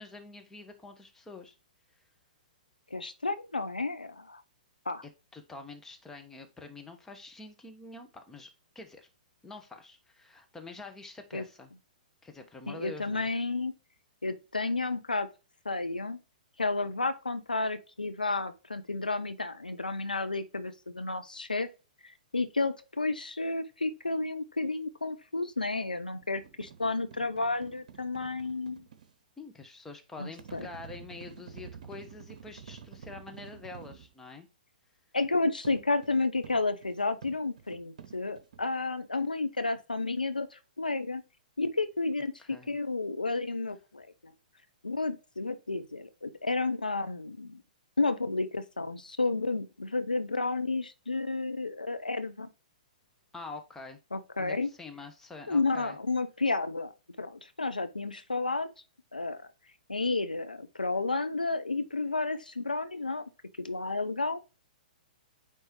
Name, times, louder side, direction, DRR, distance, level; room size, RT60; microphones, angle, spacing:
voice 1, 0.0-1.5 5.0-8.5 8.7-9.1 9.4-11.7 12.2-13.3 29.4-34.5 42.5-42.8 53.3-54.0 54.4-56.0, left 3 dB, 10° left, 1.0 m, -46 dB
voice 2, 2.9-4.4 4.9-5.0 11.3-11.4 12.7-13.7 14.2-15.3 15.6-16.2 16.6-21.7 22.3-28.9 30.2-30.7 35.1-41.2 41.6-44.3 44.8-47.6 48.0-52.5 54.1-54.7 55.5-56.9 57.2-58.7 59.1-59.5 59.9-63.2 63.6-64.4, left 3 dB, 85° left, 0.7 m, -31 dB
sound 1, 26.2-29.1 30.4-34.1 35.6-38.6, right 7 dB, 60° right, 0.9 m, -49 dB
9.0 x 3.5 x 2.9 m
figure-of-eight pair, 115°, 4 cm